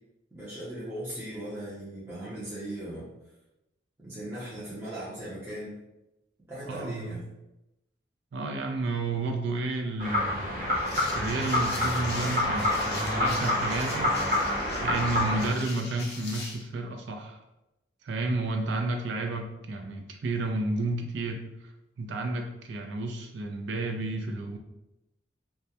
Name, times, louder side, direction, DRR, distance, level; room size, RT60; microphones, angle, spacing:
voice 1, 0.3-3.1 4.0-5.8 6.5-7.2, right 1 dB, 15° right, -11 dB, 0.5 m, -38 dB
voice 2, 6.7-7.2 8.3-10.7 11.1-14.2 14.8-17.4 18.0-21.7 22.0-24.6, right 2 dB, 75° right, 3 dB, 0.4 m, -31 dB
sound 1, 10.0-15.5, left 1 dB, 50° right, 0.7 m, -27 dB
sound 2, 10.7-16.6, left 3 dB, 55° left, 0.5 m, -42 dB
2.2 x 2.0 x 2.8 m, 0.93 s
head